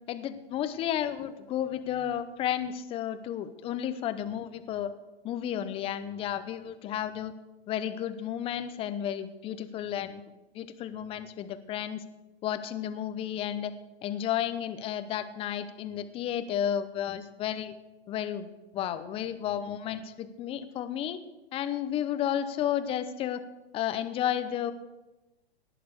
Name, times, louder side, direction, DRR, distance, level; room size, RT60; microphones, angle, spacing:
voice 1, 0.1-4.9 5.2-7.3 7.7-10.2 10.5-12.0 12.4-13.7 14.0-17.7 18.1-21.2 21.5-23.4 23.7-24.7, left 10 dB, 20° left, 12 dB, 0.7 m, -32 dB
18.0 x 6.8 x 6.6 m, 1.1 s
hypercardioid pair, 135°, 31 cm